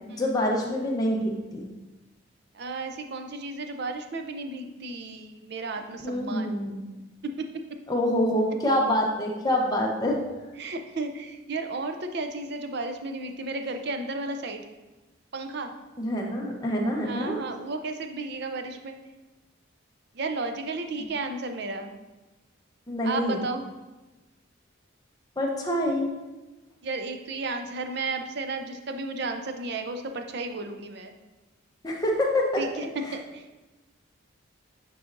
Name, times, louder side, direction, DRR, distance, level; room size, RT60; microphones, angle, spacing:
voice 1, 0.1-1.7 6.0-6.8 7.9-10.2 16.0-17.4 22.9-23.4 25.4-26.1 31.8-32.6 33.0-33.1, left 1 dB, 20° left, -1 dB, 0.8 m, -26 dB
voice 2, 2.5-6.7 7.2-7.5 10.6-14.7 15.3-15.7 17.0-19.0 20.1-21.9 23.0-23.7 26.8-31.1 32.6-32.9 33.1-33.5, right 3 dB, 55° right, 6 dB, 0.5 m, -33 dB
9.3 x 4.1 x 2.6 m, 1.1 s
head